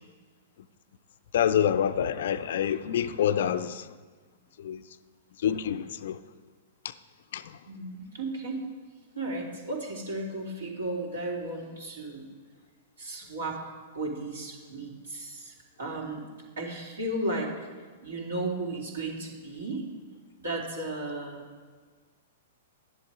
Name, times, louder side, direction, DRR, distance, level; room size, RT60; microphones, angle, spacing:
voice 1, 1.3-3.8 4.6-4.8 5.4-6.2 7.3-7.4, left 9 dB, 55° left, 0.5 m, -26 dB
voice 2, 7.7-8.6 9.1-12.2 13.0-13.6 13.9-16.2 16.6-17.7 18.0-19.9 20.4-21.4, right 2 dB, 65° right, 2.9 m, -34 dB
11.0 x 10.5 x 4.7 m
figure-of-eight pair, 105°, 0 cm